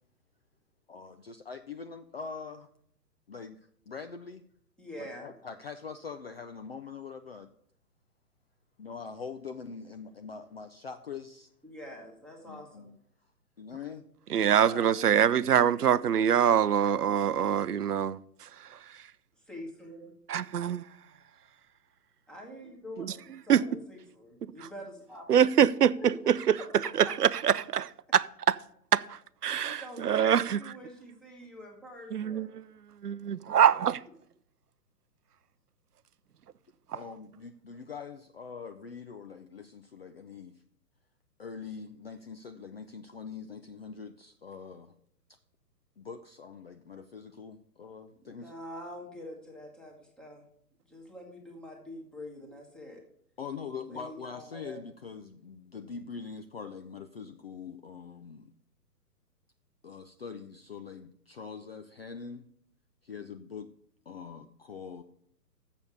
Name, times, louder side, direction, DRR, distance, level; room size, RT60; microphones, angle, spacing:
voice 1, 0.9-2.7 3.3-3.6 3.9-4.4 5.0-7.5 8.8-11.5 12.4-13.0 13.6-14.0 36.9-40.6 41.4-44.9 46.0-48.5 53.4-58.5 59.8-62.5 63.0-63.7 64.1-65.0, left 5 dB, 40° left, 0.5 m, -43 dB
voice 2, 4.8-5.3 11.6-12.9 14.4-14.9 19.5-20.1 22.3-25.3 26.0-26.1 27.0-27.1 29.6-32.5 48.2-50.4 50.9-53.0 53.9-54.8, equal, ahead, 1.2 m, -45 dB
voice 3, 14.3-18.8 20.3-20.8 23.0-23.1 23.5-23.6 25.3-26.6 27.0-28.6 28.9-30.6 32.1-32.6 33.0-34.0 36.9-37.0, right 9 dB, 70° right, 0.6 m, -25 dB
7.3 x 6.9 x 8.0 m
figure-of-eight pair, 130°, 49 cm